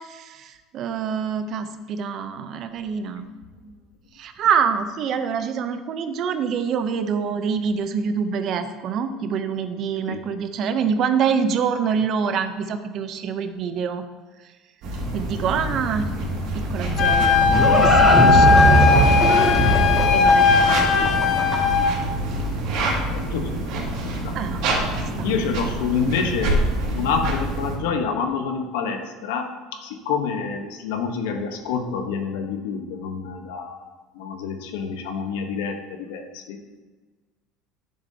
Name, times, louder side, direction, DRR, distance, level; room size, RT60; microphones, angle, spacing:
voice 1, 0.0-3.3 3.6-3.7 4.1-14.0 15.1-16.1 16.5-19.1 20.1-21.3 24.3-24.6 25.2-25.3, right 6 dB, 50° right, 9 dB, 0.6 m, -26 dB
sound 1, 14.8-27.8, right 1 dB, 65° right, 2.1 m, -26 dB
Livestock farm animals working animals, 16.8-21.9, right 1 dB, 5° left, 2.5 m, -20 dB
Wind instrument woodwind instrument, 17.0-21.9, left 5 dB, 50° left, 0.7 m, -18 dB
voice 2, 23.1-23.5 24.2-24.4 25.2-29.5 29.8-36.6, left 6 dB, 85° left, 5 dB, 1.0 m, -27 dB
10.0 x 6.9 x 2.8 m, 1.3 s
supercardioid pair, 125°, 0 cm